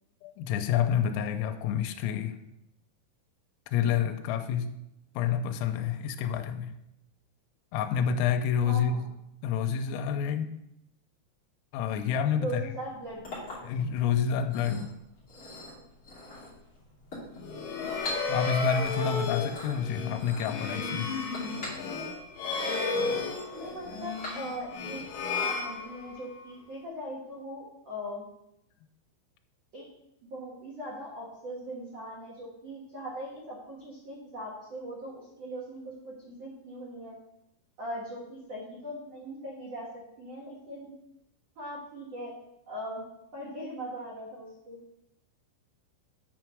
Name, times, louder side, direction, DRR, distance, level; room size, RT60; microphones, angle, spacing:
voice 1, 0.2-2.4 3.7-4.8 5.2-6.7 7.7-9.0 9.4-10.5 11.7-12.6 13.6-14.9 18.3-21.1, left 8 dB, 90° left, 6 dB, 3.3 m, -28 dB
voice 2, 8.6-9.1 12.3-13.4 17.9-18.0 23.2-25.0 25.3-28.2 29.7-29.9 30.3-37.2 37.8-40.9 41.5-42.3 42.6-43.0 43.3-44.8, right 1 dB, 75° right, -4 dB, 1.4 m, -40 dB
Chink clink, 12.8-24.8, left 2 dB, 30° left, 1.9 m, -44 dB
sound 1, 17.3-26.4, left 4 dB, 70° left, 2.1 m, -33 dB
9.2 x 4.6 x 6.1 m, 0.84 s
omnidirectional pair, 5.9 m